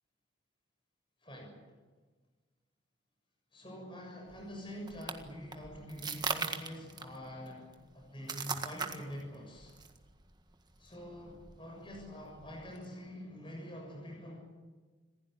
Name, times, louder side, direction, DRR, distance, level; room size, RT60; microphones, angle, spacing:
voice 1, 1.2-1.6 3.5-9.8 10.8-14.4, equal, 25° left, 0 dB, 6.8 m, -46 dB
sound 1, 4.3-12.9, right 5 dB, 20° right, 1.7 m, -42 dB
27.0 x 16.0 x 9.8 m, 1.4 s
head